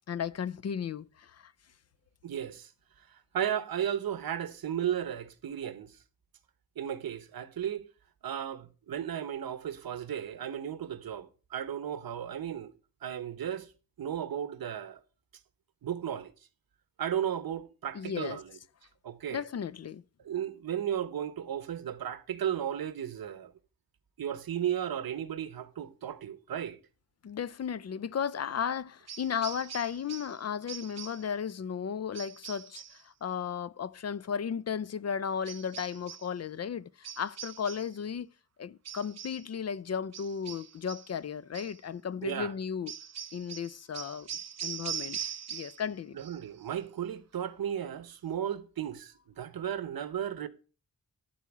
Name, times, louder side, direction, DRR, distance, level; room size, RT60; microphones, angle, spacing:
voice 1, 0.1-1.5 17.9-18.4 19.3-20.0 27.2-38.3 38.6-42.9 43.3-44.3 44.6-45.2 45.5-46.2, left 7 dB, 45° left, 0.5 m, -35 dB
voice 2, 2.2-2.7 3.3-5.9 6.8-7.9 8.2-12.7 13.0-13.7 14.0-15.0 15.8-16.3 17.0-18.5 19.0-19.4 20.2-23.5 24.2-26.8 42.2-42.5 46.1-50.5, right 9 dB, 80° right, 1.0 m, -34 dB
sound 1, 29.1-30.4 30.7-31.3 32.1-33.0 35.4-36.3 37.0-38.0 38.8-39.5 40.1-41.1 41.5-41.8 42.9-45.9 46.2-46.7, right 9 dB, 50° right, 0.6 m, -42 dB
12.0 x 4.4 x 7.2 m
wide cardioid pair, 145°, 35 cm